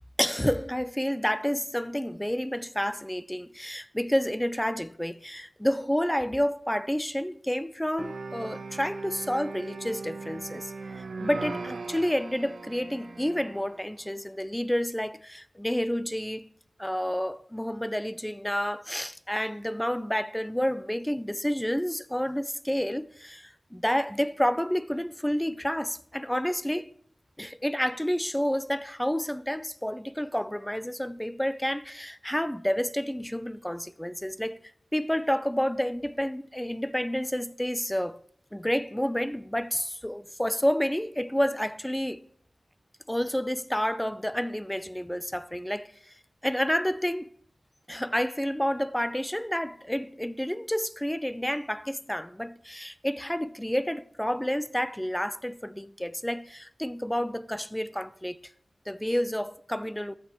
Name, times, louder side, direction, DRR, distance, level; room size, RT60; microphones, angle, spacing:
voice 1, 0.2-10.7 11.2-16.5 16.8-26.9 27.4-34.6 34.9-38.2 38.5-42.2 43.1-46.2 46.4-47.3 47.9-58.5 58.9-60.1, equal, 5° left, 0.4 m, -29 dB
sound 1, 8.0-13.9, right 4 dB, 75° right, 1.2 m, -39 dB
14.0 x 8.1 x 3.0 m
wide cardioid pair, 100°, 0 cm